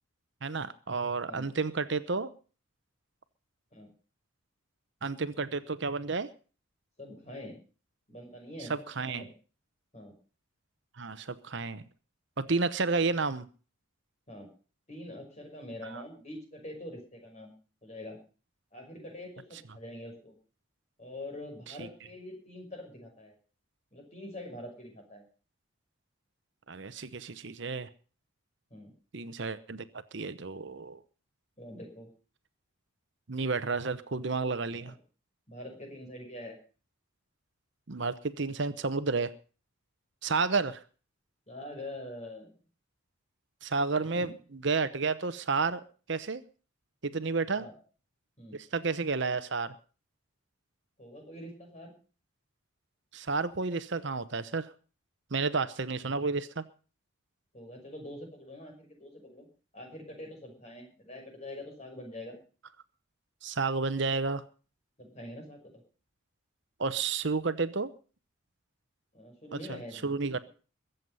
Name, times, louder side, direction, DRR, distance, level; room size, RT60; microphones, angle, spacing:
voice 1, 0.4-2.3 5.0-6.3 8.7-9.2 11.0-11.9 12.4-13.5 15.9-16.0 21.8-21.9 26.7-27.9 29.1-29.8 30.1-31.0 33.3-34.9 37.9-39.3 40.2-40.8 43.6-45.8 46.1-46.4 47.0-47.7 48.5-49.7 53.1-54.7 55.3-56.6 63.4-64.4 66.8-67.9 69.5-70.5, right 4 dB, 60° right, 13 dB, 0.9 m, -31 dB
voice 2, 7.0-7.6 8.1-9.3 9.9-10.1 14.3-14.5 14.9-17.5 17.8-18.2 18.7-20.3 21.0-23.3 23.9-25.2 28.7-28.9 31.6-32.1 34.7-35.0 35.5-36.6 41.5-42.5 44.0-44.3 47.5-47.7 48.4-48.6 51.0-51.9 57.5-59.5 59.7-62.4 65.0-65.8 69.1-70.1, left 1 dB, 30° left, 3 dB, 5.8 m, -45 dB
22.5 x 8.0 x 5.5 m, 0.37 s
head